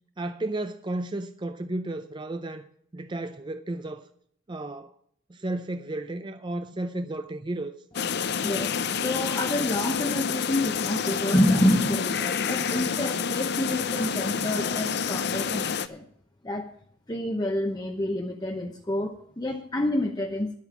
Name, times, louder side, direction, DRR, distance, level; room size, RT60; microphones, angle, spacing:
voice 1, 0.2-2.7 2.9-4.1 4.5-4.9 5.3-7.7, right 2 dB, 25° right, 0.5 m, -33 dB
sound 1, 7.9-15.9, left 6 dB, 55° left, 0.6 m, -28 dB
voice 2, 8.4-16.0 16.4-16.7 17.1-20.6, left 1 dB, 20° left, 0.8 m, -28 dB
11.0 x 8.3 x 7.3 m
head